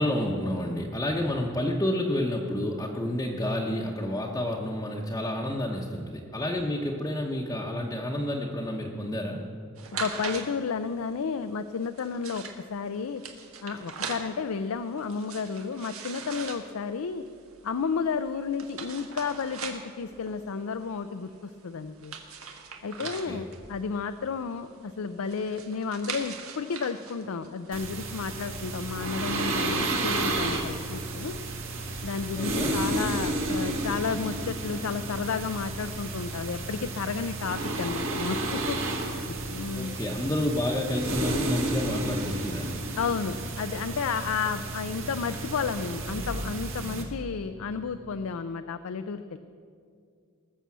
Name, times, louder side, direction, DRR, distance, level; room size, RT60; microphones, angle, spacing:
voice 1, 0.0-9.4 23.0-23.4 32.3-32.8 39.7-42.7, left 1 dB, 15° left, -2 dB, 0.9 m, -30 dB
sound 1, 9.8-28.7, right 5 dB, 85° right, 1.5 m, -42 dB
voice 2, 10.0-12.4 12.7-13.2 13.6-17.2 17.6-22.2 22.8-31.3 32.0-38.8 39.1-40.0 43.0-49.4, left 5 dB, 85° left, 10 dB, 0.5 m, -32 dB
sound 2, 27.7-47.0, right 2 dB, 65° right, 1.9 m, -32 dB
19.5 x 6.9 x 7.4 m, 2.3 s
head